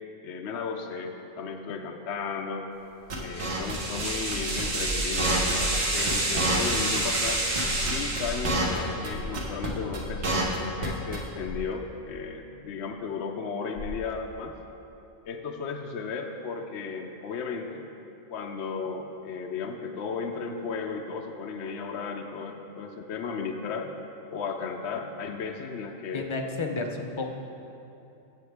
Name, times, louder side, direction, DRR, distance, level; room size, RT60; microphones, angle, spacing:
voice 1, 0.2-2.7 3.2-7.4 7.9-14.6 15.2-17.8 18.3-23.9 24.3-26.2, left 5 dB, 65° left, 3 dB, 0.8 m, -35 dB
sound 1, 3.1-4.0 4.3-4.6 4.9-5.0 5.2-5.8 6.1-6.2 6.4-7.3 7.6-8.8 9.0-9.1 9.3-9.7 9.9-10.9 11.1-11.2, right 2 dB, 60° right, 1.6 m, -28 dB
sound 2, 3.3-8.9, right 2 dB, 90° right, 1.9 m, -29 dB
sound 3, 7.6-8.5 9.1-9.5 10.0-10.3 11.4-11.7 13.8-14.1, left 2 dB, 80° left, 1.1 m, -37 dB
voice 2, 26.1-27.3, left 3 dB, 45° left, 3 dB, 0.3 m, -31 dB
14.5 x 6.9 x 3.4 m, 2.9 s
omnidirectional pair, 1.3 m